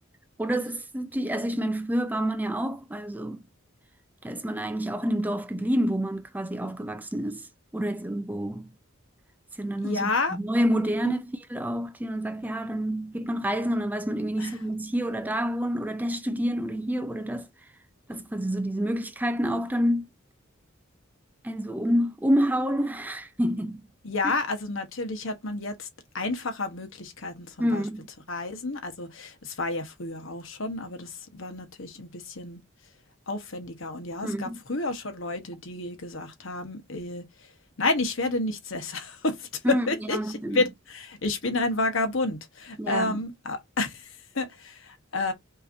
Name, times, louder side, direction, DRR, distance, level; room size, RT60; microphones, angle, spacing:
voice 1, 0.4-3.4 4.2-7.5 7.7-8.7 9.6-17.5 18.1-20.1 21.4-23.9 27.6-28.1 34.2-34.6 39.6-40.6 42.8-43.2, equal, 10° right, 0.4 m, -28 dB
voice 2, 9.8-10.4 11.0-11.1 14.4-14.6 24.0-25.9 26.1-27.8 28.3-32.6 33.3-37.5 37.8-45.3, left 3 dB, 70° left, 1.3 m, -30 dB
5.6 x 3.1 x 2.6 m
head